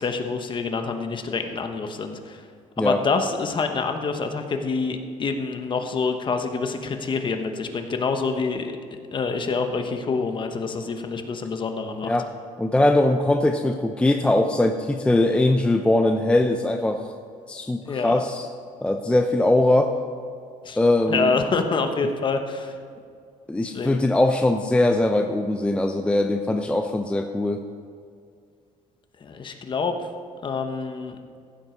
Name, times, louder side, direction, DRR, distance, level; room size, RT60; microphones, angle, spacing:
voice 1, 0.0-2.4 2.8-8.7 9.1-12.1 17.9-18.2 20.6-20.8 21.1-22.8 23.6-24.0 29.2-30.0 30.4-31.2, left 4 dB, 35° left, 6 dB, 1.0 m, -26 dB
voice 2, 12.6-17.1 17.5-18.5 18.8-19.9 20.8-21.3 23.5-27.6, left 1 dB, 10° left, 5 dB, 0.5 m, -21 dB
15.0 x 7.8 x 4.5 m, 2.2 s
cardioid pair, 130°, 14 cm